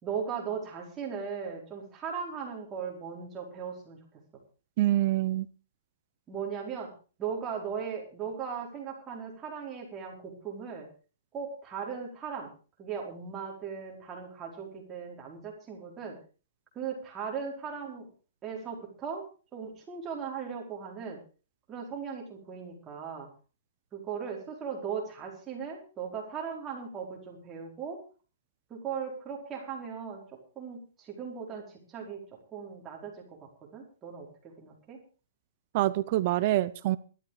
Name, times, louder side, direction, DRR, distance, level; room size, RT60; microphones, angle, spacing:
voice 1, 0.0-4.0 6.3-6.9 7.2-10.9 11.3-12.5 12.8-16.2 16.7-18.1 18.4-19.3 19.5-21.2 21.7-23.3 23.9-28.0 28.7-32.2 32.5-33.4 33.7-35.0, right 6 dB, 15° right, -1 dB, 4.6 m, -38 dB
voice 2, 4.8-5.5 35.7-37.0, right 15 dB, 35° right, 17 dB, 0.7 m, -26 dB
15.0 x 13.0 x 4.9 m, 0.36 s
hypercardioid pair, 165°, 0 cm